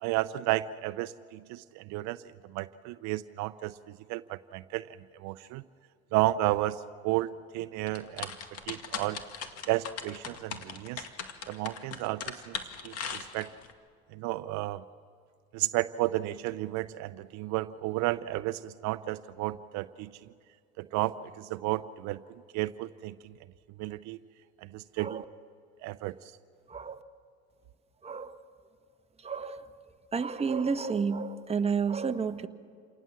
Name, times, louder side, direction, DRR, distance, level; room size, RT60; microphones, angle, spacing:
voice 1, 0.0-2.2 2.5-5.6 6.1-8.3 8.7-9.2 9.7-11.0 11.5-12.6 12.8-13.5 14.1-14.8 15.5-20.1 20.8-23.3 23.8-24.2 24.6-25.2 25.8-26.3, right 16 dB, 65° right, 13 dB, 0.6 m, -32 dB
sound 1, 7.9-13.7, left 7 dB, 55° left, 2.1 m, -38 dB
voice 2, 26.7-27.0 28.0-28.4 29.2-29.7 30.1-32.5, right 5 dB, 20° right, 6 dB, 1.2 m, -31 dB
28.0 x 19.0 x 7.4 m, 2.2 s
supercardioid pair, 100°, 30 cm